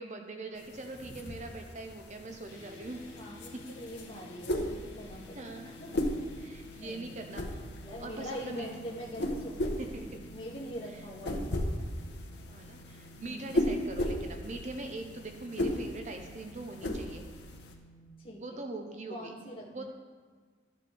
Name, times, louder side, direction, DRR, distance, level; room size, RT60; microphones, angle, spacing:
voice 1, 0.0-3.0 5.3-5.7 6.4-7.6 8.0-8.7 9.8-10.1 10.9-11.0 12.5-17.2 18.4-19.4 19.7-19.8, right 2 dB, 40° right, 4 dB, 0.6 m, -42 dB
sound 1, 0.6-17.7, left 1 dB, 70° left, 1.0 m, -37 dB
sound 2, 2.5-18.1, left 1 dB, 85° left, 2.4 m, -54 dB
voice 2, 3.0-5.9 6.2-6.5 6.8-7.1 7.8-9.6 9.9-11.7 13.2-13.5 18.2-18.6 19.1-19.8, equal, 30° left, -6 dB, 2.0 m, -44 dB
12.5 x 6.8 x 3.4 m, 1.5 s
head